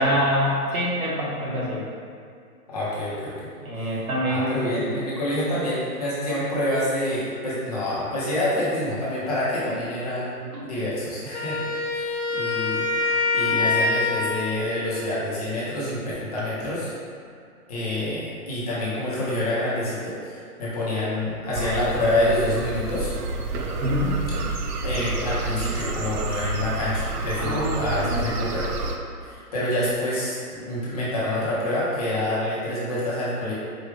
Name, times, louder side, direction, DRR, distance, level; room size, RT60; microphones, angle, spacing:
voice 1, 0.0-1.8 3.6-4.8 23.8-24.1 27.4-28.3, equal, 65° right, -5 dB, 1.3 m, -25 dB
voice 2, 2.7-3.5 3.8-4.0 4.3-12.8 13.3-16.9 17.7-23.1 24.8-28.6 29.2-33.5, left 1 dB, 25° left, -8 dB, 0.8 m, -27 dB
Wind instrument woodwind instrument, 11.3-14.7, left 3 dB, 50° left, 0.4 m, -25 dB
sound 1, 21.5-29.0, right 3 dB, 80° right, 0.6 m, -29 dB
4.8 x 2.4 x 3.2 m, 2.3 s
hypercardioid pair, 165°, 46 cm